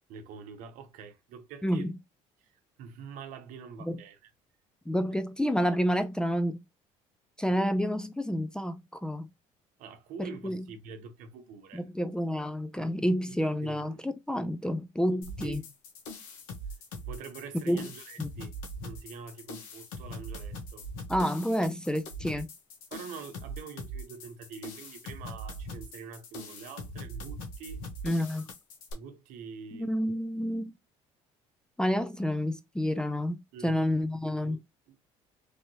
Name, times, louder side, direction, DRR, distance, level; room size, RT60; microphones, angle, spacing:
voice 1, 0.1-1.9 2.4-4.3 9.8-11.9 13.3-13.4 13.6-14.0 15.1-15.6 17.1-20.9 22.9-27.9 28.9-29.9 33.5-33.8 34.4-34.6 34.9-35.0, right 6 dB, 75° right, 0.9 m, -45 dB
voice 2, 1.6-1.9 3.8-4.0 4.9-6.6 7.4-9.3 10.2-10.6 11.7-15.6 17.7-17.9 18.2-18.3 21.1-22.5 28.0-28.5 29.7-30.7 31.8-34.6, equal, 5° left, 0.4 m, -29 dB
sound 1, 15.2-28.9, equal, 80° left, 1.1 m, -42 dB
3.4 x 2.7 x 2.7 m
supercardioid pair, 95°, 14 cm